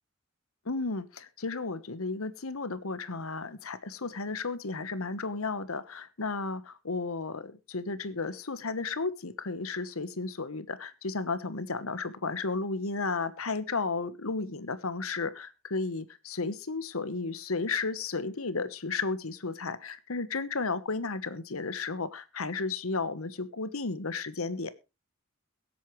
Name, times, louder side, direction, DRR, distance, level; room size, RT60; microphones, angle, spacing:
voice 1, 0.6-24.7, left 3 dB, 75° left, 14 dB, 1.2 m, -33 dB
22.5 x 8.4 x 3.2 m, 0.27 s
head